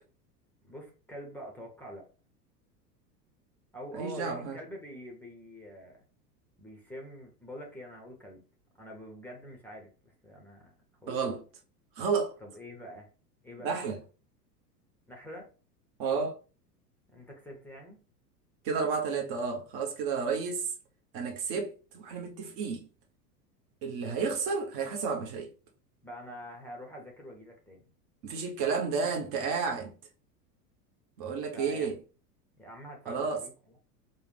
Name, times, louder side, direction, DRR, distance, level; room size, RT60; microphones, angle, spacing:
voice 1, 0.7-2.1 3.7-6.0 6.6-8.4 8.8-10.7 11.0-11.4 12.4-13.1 13.4-13.7 15.1-15.5 17.1-18.0 24.0-24.2 26.0-27.9 31.5-31.9 32.6-33.5, equal, 5° left, 0.7 m, -45 dB
voice 2, 3.9-4.6 11.1-11.4 12.0-12.3 13.6-14.0 16.0-16.4 18.6-20.7 21.1-22.9 23.8-25.5 28.2-29.9 31.2-32.0 33.1-33.4, right 5 dB, 35° right, 0.8 m, -31 dB
4.8 x 2.2 x 3.2 m
figure-of-eight pair, 85°, 49 cm